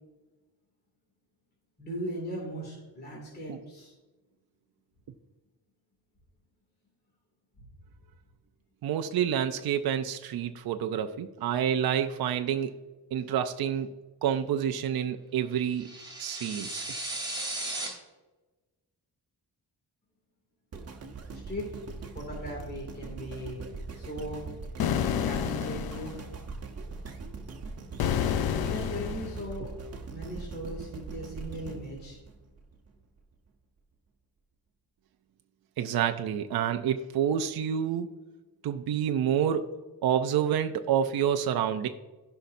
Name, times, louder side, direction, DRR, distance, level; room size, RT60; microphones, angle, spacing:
voice 1, 1.8-3.9 21.3-21.7 22.1-23.6 23.9-24.4 25.2-26.2 28.5-29.7 30.1-32.2, equal, 25° left, -3 dB, 2.6 m, -38 dB
voice 2, 8.8-12.7 13.1-13.9 14.2-15.9 16.2-16.8 35.8-38.1 38.6-39.6 40.0-41.9, right 9 dB, 70° right, 6 dB, 0.7 m, -28 dB
sound 1, 15.8-17.9, right 2 dB, 10° right, 3.2 m, -35 dB
sound 2, 20.7-32.9 33.5-33.6, right 4 dB, 40° right, 1.2 m, -41 dB
sound 3, 24.8-26.2 28.0-29.4, left 9 dB, 70° left, 0.7 m, -29 dB
15.5 x 5.6 x 2.7 m, 1.2 s
wide cardioid pair, 130°, 38 cm